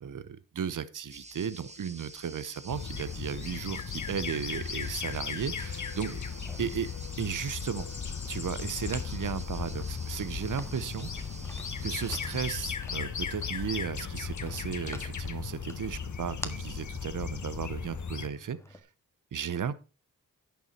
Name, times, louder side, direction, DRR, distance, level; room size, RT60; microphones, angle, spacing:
voice 1, 0.0-6.2 6.6-6.9 7.2-7.9 8.3-11.1 11.8-18.8 19.3-19.7, right 7 dB, 70° right, 17 dB, 0.8 m, -35 dB
sound 1, 1.1-12.6, right 2 dB, 20° right, 1.5 m, -48 dB
sound 2, 2.7-18.3, left 6 dB, 60° left, 1.1 m, -36 dB
sound 3, 6.3-18.8, left 1 dB, 10° left, 1.6 m, -49 dB
10.5 x 7.1 x 4.2 m, 0.30 s
cardioid pair, 45°, 33 cm